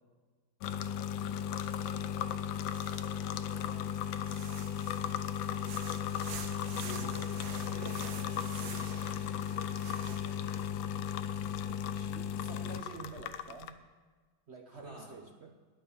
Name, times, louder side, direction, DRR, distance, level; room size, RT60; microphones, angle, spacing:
sound 1, 0.6-13.7, left 9 dB, 85° left, 1.4 m, -36 dB
voice 1, 2.0-2.5 3.1-4.0 6.1-7.2 7.5-9.7 10.1-10.8 12.5-13.2 14.7-15.2, left 1 dB, 35° right, -6 dB, 4.1 m, -51 dB
sound 2, 2.7-3.5 4.0-10.6, right 7 dB, 90° right, 1.6 m, -47 dB
voice 2, 11.7-13.8 14.5-15.5, right 4 dB, 60° right, 3 dB, 0.7 m, -49 dB
10.5 x 9.2 x 6.9 m, 1.4 s
omnidirectional pair, 2.1 m